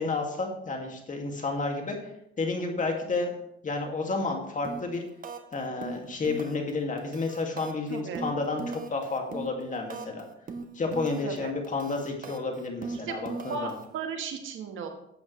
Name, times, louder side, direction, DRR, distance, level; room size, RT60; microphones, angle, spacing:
voice 1, 0.0-2.0 2.4-5.0 5.5-10.2 10.7-13.8, left 3 dB, 40° left, 2 dB, 2.3 m, -31 dB
sound 1, 4.6-4.9 5.2-5.5 5.8-6.7 7.0-10.2 10.5-11.4 11.6-13.8, right 4 dB, 45° right, 1.3 m, -38 dB
voice 2, 7.9-8.3 11.2-11.5 13.1-13.2 13.5-14.9, right 5 dB, 80° right, 5 dB, 1.6 m, -35 dB
12.5 x 8.4 x 3.3 m, 0.79 s
cardioid pair, 90°, 20 cm